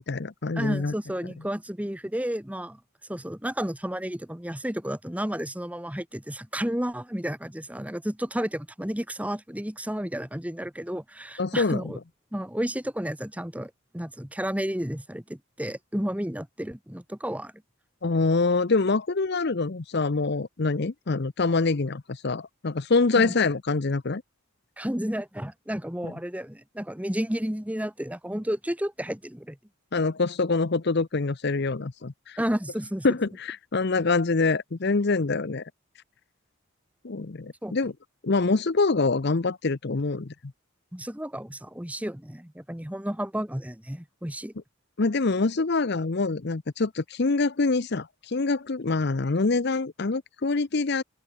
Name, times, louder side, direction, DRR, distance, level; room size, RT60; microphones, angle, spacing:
voice 1, 0.0-0.9 11.4-11.9 18.0-24.2 26.0-26.1 29.9-32.4 33.0-35.6 37.0-37.9 38.2-40.3 45.0-51.0, left 3 dB, 50° left, 0.7 m, -25 dB
voice 2, 0.5-2.8 3.1-12.0 12.3-17.5 23.2-23.4 24.8-29.6 32.4-33.0 37.6-37.8 40.9-44.5, equal, 5° right, 1.4 m, -32 dB
open air
head